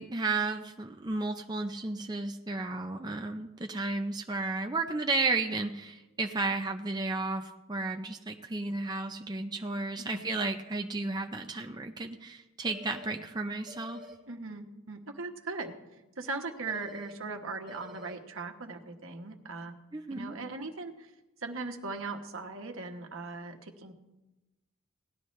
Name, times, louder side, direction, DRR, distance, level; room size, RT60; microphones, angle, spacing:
voice 1, 0.0-14.0 19.9-20.4, right 3 dB, 20° right, 4 dB, 0.5 m, -33 dB
sound 1, 12.7-13.1 13.7-14.1 16.7-17.1 17.7-18.1, left 2 dB, 5° right, 2.9 m, -48 dB
voice 2, 14.3-15.8 16.2-19.8 20.1-21.1 21.4-23.9, right 3 dB, 70° right, 4 dB, 1.3 m, -39 dB
18.0 x 12.0 x 3.2 m, 1.0 s
head